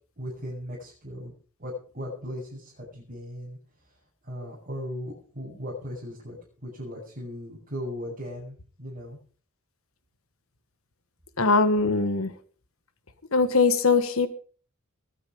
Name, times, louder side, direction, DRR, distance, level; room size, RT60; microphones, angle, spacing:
voice 1, 0.2-1.3 1.6-4.0 4.2-9.2, equal, 40° right, -6 dB, 7.1 m, -38 dB
voice 2, 11.4-12.3 13.3-14.3, left 4 dB, 70° left, 12 dB, 1.5 m, -21 dB
22.0 x 9.5 x 5.1 m, 0.41 s
head